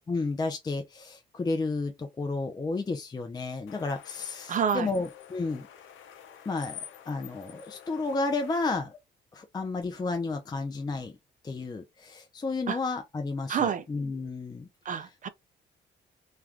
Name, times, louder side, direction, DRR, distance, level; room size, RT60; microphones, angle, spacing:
voice 1, 0.1-5.7 6.5-9.0 9.3-11.2 11.4-15.1, left 3 dB, 20° left, 0.4 m, -32 dB
sound 1, 3.7-8.8, left 9 dB, 80° left, 0.6 m, -46 dB
voice 2, 4.5-4.9 12.7-12.8 13.5-13.8 14.9-15.3, right 7 dB, 40° right, 0.5 m, -28 dB
2.4 x 2.2 x 3.2 m
cardioid pair, 90°, 20 cm